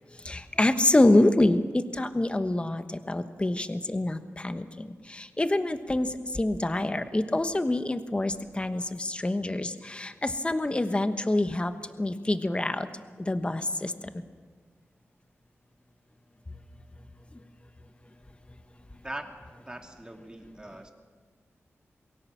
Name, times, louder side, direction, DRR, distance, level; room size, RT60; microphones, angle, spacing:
voice 1, 0.2-12.9 13.2-14.2, left 1 dB, 20° left, 9 dB, 1.2 m, -26 dB
voice 2, 19.6-20.9, right 1 dB, 15° right, 3 dB, 2.5 m, -41 dB
23.0 x 16.5 x 7.4 m, 1.5 s
wide cardioid pair, 85°, 5 cm